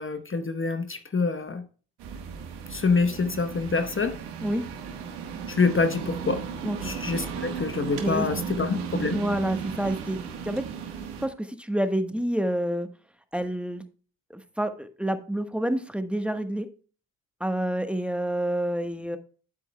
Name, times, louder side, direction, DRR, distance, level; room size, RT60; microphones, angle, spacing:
voice 1, 0.0-1.6 2.7-4.2 5.5-6.4 6.8-9.2, left 4 dB, 30° left, 1.0 m, -26 dB
sound 1, 2.0-11.3, right 6 dB, 85° right, 1.4 m, -35 dB
voice 2, 6.6-6.9 8.0-8.6 9.1-10.2 10.4-10.6 11.2-12.9 13.3-13.8 14.3-16.7 17.4-19.2, right 1 dB, 5° right, 1.2 m, -28 dB
9.7 x 8.4 x 2.2 m
supercardioid pair, 45°, 39 cm